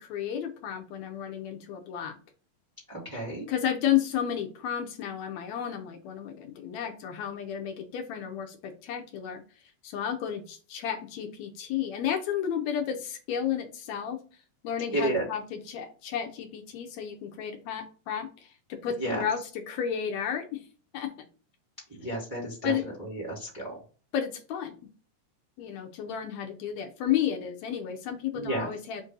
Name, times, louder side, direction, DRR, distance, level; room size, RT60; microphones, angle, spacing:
voice 1, 0.0-2.1 3.5-9.4 9.8-14.2 14.6-18.5 18.8-19.4 19.7-20.6 20.9-21.3 22.6-22.8 24.1-24.8 25.6-29.0, left 9 dB, 75° left, 4 dB, 1.9 m, -32 dB
voice 2, 2.9-3.5 14.9-15.3 18.8-19.2 21.9-23.8 28.3-28.7, right 1 dB, 10° right, -4 dB, 1.2 m, -32 dB
5.1 x 2.6 x 3.8 m, 0.37 s
omnidirectional pair, 3.3 m